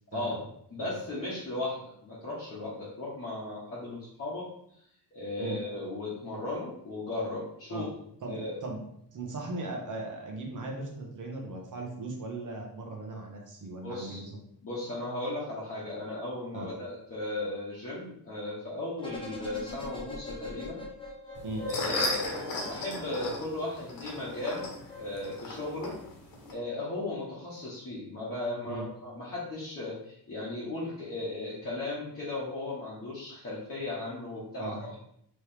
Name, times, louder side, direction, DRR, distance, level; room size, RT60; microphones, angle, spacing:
voice 1, 0.7-4.5 5.1-7.9 8.2-8.5 13.8-14.2 14.6-20.8 21.5-24.7 24.9-25.9 26.5-35.0, left 2 dB, 35° left, -8 dB, 1.1 m, -36 dB
voice 2, 8.2-8.8 9.1-14.4 16.5-16.7 21.4-21.6 28.6-28.8 34.6-35.0, right 2 dB, 50° right, 0 dB, 1.0 m, -38 dB
sound 1, 19.0-23.4 24.2-26.1 26.4-26.5, left 2 dB, 10° left, 0.8 m, -44 dB
sound 2, 21.3-26.5, left 2 dB, 55° left, 1.2 m, -36 dB
4.3 x 3.2 x 3.4 m, 0.72 s
wide cardioid pair, 175°, 41 cm